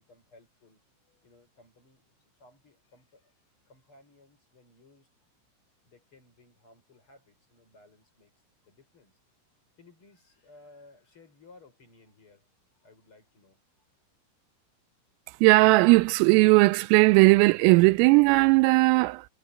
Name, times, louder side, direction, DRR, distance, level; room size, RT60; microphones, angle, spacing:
voice 1, 0.0-3.3 3.6-5.1 5.8-9.2 9.8-12.4 12.8-13.6, left 2 dB, 25° left, 6.2 m, -58 dB
voice 2, 15.4-19.3, right 24 dB, 85° right, 3.2 m, -18 dB
omnidirectional pair, 5.9 m